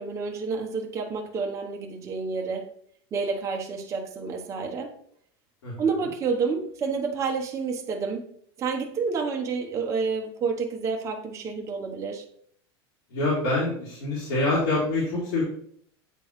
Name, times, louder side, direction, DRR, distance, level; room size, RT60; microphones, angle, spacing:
voice 1, 0.0-2.7 3.1-4.9 5.8-8.2 8.6-12.2, right 5 dB, 20° right, 0.8 m, -29 dB
voice 2, 13.1-15.4, left 2 dB, 75° left, 2.9 m, -26 dB
8.9 x 3.8 x 3.1 m
supercardioid pair, 150°, 13 cm